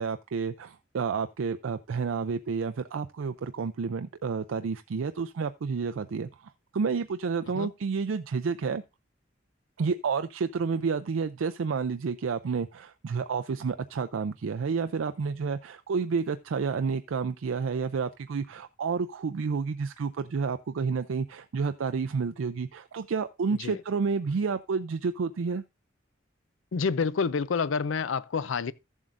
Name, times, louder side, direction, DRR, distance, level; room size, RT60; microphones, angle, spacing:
voice 1, 0.0-6.3 6.7-8.8 9.8-25.6, right 5 dB, 90° right, 0.4 m, -30 dB
voice 2, 26.7-28.7, left 5 dB, 80° left, 0.5 m, -28 dB
14.5 x 7.3 x 2.5 m
head